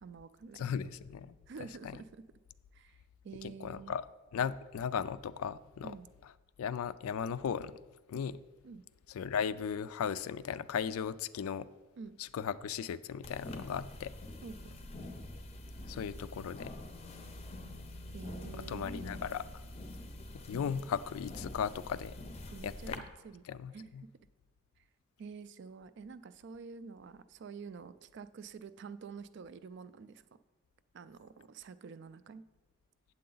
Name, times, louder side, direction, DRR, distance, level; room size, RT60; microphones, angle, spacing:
voice 1, 0.0-0.9 1.5-2.2 2.7-4.0 5.8-6.1 8.6-8.8 12.0-12.2 14.4-14.8 18.1-19.1 22.5-23.4 23.7-23.9 24.8-24.9 25.2-30.2 30.9-32.4, right 5 dB, 50° right, 14 dB, 0.3 m, -48 dB
voice 2, 0.6-1.3 1.8-1.9 3.4-4.1 4.3-5.9 6.6-7.7 8.1-8.4 9.1-11.7 12.2-14.1 15.9-16.7 18.5-19.6 20.5-22.2 22.6-23.0 23.5-24.0, left 7 dB, 80° left, 16 dB, 0.3 m, -36 dB
sound 1, 13.2-23.0, left 1 dB, 30° left, 0.5 m, -46 dB
8.5 x 7.7 x 3.9 m, 1.2 s
head